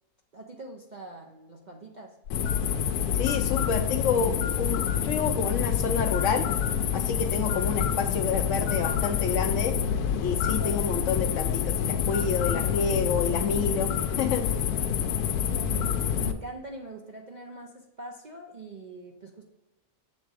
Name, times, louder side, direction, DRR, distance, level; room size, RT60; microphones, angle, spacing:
voice 1, 0.3-2.2 10.5-10.9 15.4-19.4, right 2 dB, 50° right, 0 dB, 0.5 m, -43 dB
sound 1, 2.3-16.3, left 8 dB, 85° left, 1.1 m, -27 dB
voice 2, 3.1-6.5 6.9-9.8 10.2-14.4, left 5 dB, 65° left, 6 dB, 0.8 m, -29 dB
7.4 x 3.7 x 4.8 m, 0.96 s
omnidirectional pair, 1.6 m